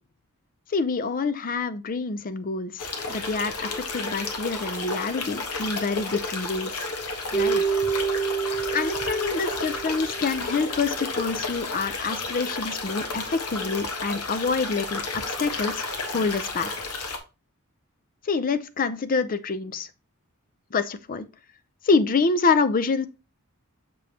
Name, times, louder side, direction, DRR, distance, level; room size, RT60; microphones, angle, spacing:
voice 1, 0.7-6.9 7.3-7.6 8.7-15.9 16.1-16.7 18.2-19.9 20.7-21.2 21.8-23.1, left 4 dB, 40° left, 0.5 m, -26 dB
sound 1, 2.8-17.2, left 3 dB, 90° left, 1.3 m, -32 dB
Keyboard (musical), 7.3-10.6, right 6 dB, 20° left, 0.9 m, -27 dB
6.9 x 5.1 x 2.8 m
head